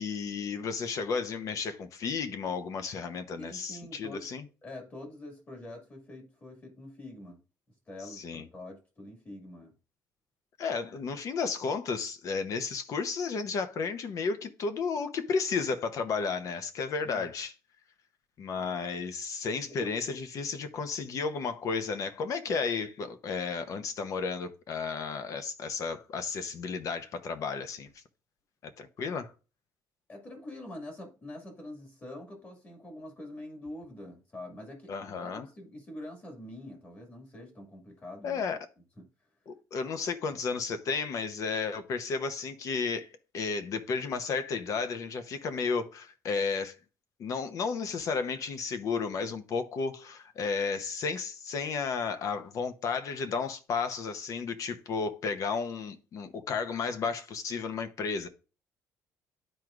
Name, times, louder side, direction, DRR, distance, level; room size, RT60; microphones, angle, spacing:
voice 1, 0.0-4.4 8.0-8.5 10.6-17.5 18.4-27.9 28.6-29.3 34.9-35.5 38.2-38.6 39.5-43.1 43.3-46.7 47.2-58.3, left 5 dB, 50° left, 0.9 m, -33 dB
voice 2, 3.4-4.3 4.6-7.4 7.9-9.7 17.0-17.3 19.6-19.9 30.1-38.4 39.0-39.1 40.3-40.4, left 1 dB, 30° left, 2.2 m, -45 dB
12.5 x 4.6 x 2.5 m
cardioid pair, 155°, 7 cm